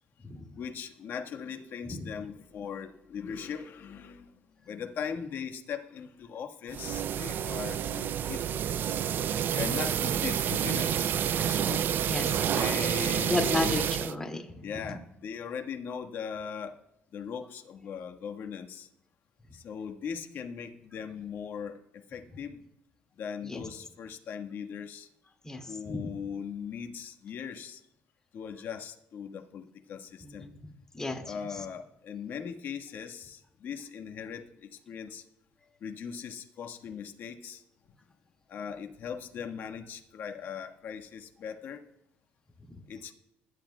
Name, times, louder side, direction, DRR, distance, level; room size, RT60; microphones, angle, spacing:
voice 1, 0.6-4.3 4.6-8.4 9.5-11.1 11.3-11.8 12.5-13.9 14.6-16.8 17.1-18.9 19.5-21.8 22.1-22.6 23.2-25.1 25.7-27.8 28.3-30.8 31.2-35.2 35.8-37.6 38.5-41.8 42.9-43.1, left 7 dB, 60° left, 3 dB, 1.4 m, -39 dB
sound 1, 6.7-14.1, right 9 dB, 55° right, 0.4 m, -29 dB
voice 2, 12.0-12.6 13.3-14.6 23.4-23.7 25.4-26.1 30.2-30.5 30.9-31.2, left 2 dB, 15° left, 3 dB, 2.2 m, -33 dB
20.5 x 11.5 x 2.2 m, 0.83 s
cardioid pair, 90°, 4 cm